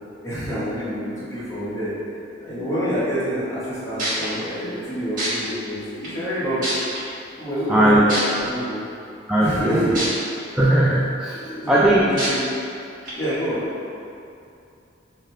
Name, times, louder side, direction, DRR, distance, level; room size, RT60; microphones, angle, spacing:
voice 1, 0.2-1.9 2.4-7.0 7.4-8.8 9.4-10.1 11.3-12.4 13.1-13.7, equal, 15° left, -11 dB, 1.2 m, -27 dB
sound 1, 3.6-3.7 4.0-4.3 5.2-5.3 6.0-6.1 6.6-7.0 8.1-8.2 10.0-10.1 10.6-10.7 12.2-12.3 13.1-13.2, right 1 dB, 45° right, 1.4 m, -25 dB
voice 2, 7.7-8.1 9.3-10.0 10.6-11.4 11.7-12.0, right 1 dB, 5° right, -8 dB, 0.3 m, -18 dB
3.7 x 2.8 x 3.2 m, 2.6 s
head